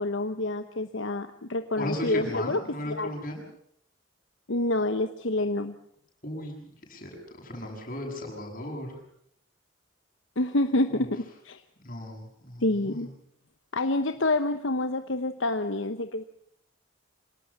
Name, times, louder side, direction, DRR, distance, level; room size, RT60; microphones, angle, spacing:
voice 1, 0.0-3.1 4.5-5.7 10.4-11.6 12.6-13.1 13.7-16.2, left 2 dB, 70° left, 8 dB, 1.1 m, -28 dB
voice 2, 1.8-3.4 6.2-9.0 10.9-11.0 11.8-13.1, left 1 dB, 40° left, 1 dB, 7.5 m, -36 dB
26.0 x 18.0 x 7.2 m, 0.67 s
head